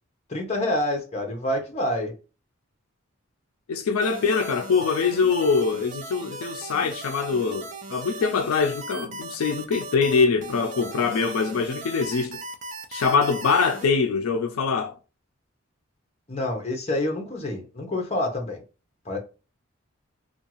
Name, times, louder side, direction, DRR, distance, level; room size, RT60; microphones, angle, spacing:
voice 1, 0.3-2.1 16.3-18.6 19.1-19.2, left 1 dB, 30° left, 0.7 m, -27 dB
voice 2, 3.7-12.4 12.9-15.0, left 5 dB, 85° left, 0.4 m, -23 dB
sound 1, 4.0-13.9, right 2 dB, 35° right, 0.4 m, -38 dB
2.6 x 2.3 x 2.9 m
head